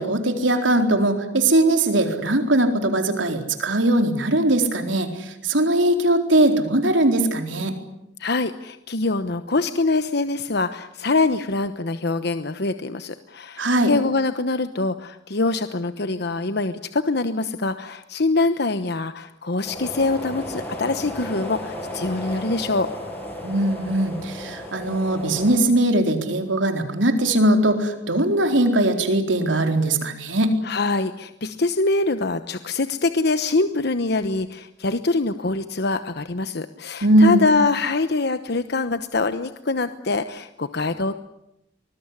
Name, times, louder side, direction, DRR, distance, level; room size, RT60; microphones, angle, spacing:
voice 1, 0.0-7.7 13.6-13.9 23.4-30.5 37.0-37.4, right 1 dB, 85° right, 5 dB, 4.2 m, -20 dB
voice 2, 8.2-22.9 30.6-41.2, left 3 dB, 60° left, 10 dB, 1.1 m, -24 dB
sound 1, 19.6-25.6, left 1 dB, 10° left, 6.9 m, -34 dB
24.5 x 21.0 x 9.9 m, 0.84 s
head